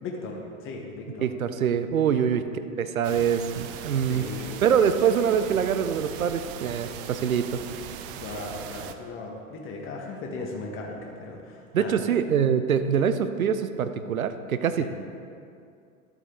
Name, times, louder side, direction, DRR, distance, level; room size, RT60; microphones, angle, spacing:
voice 1, 0.0-1.2 2.1-2.3 4.1-4.6 8.2-12.0 14.8-14.9, left 3 dB, 30° left, 0 dB, 1.5 m, -37 dB
voice 2, 1.2-4.2 4.6-7.6 11.7-14.9, right 7 dB, 75° right, 10 dB, 0.7 m, -24 dB
sound 1, 3.0-8.9, right 9 dB, 40° right, 0.6 m, -39 dB
12.0 x 8.2 x 3.7 m, 2.4 s
figure-of-eight pair, 95°, 42 cm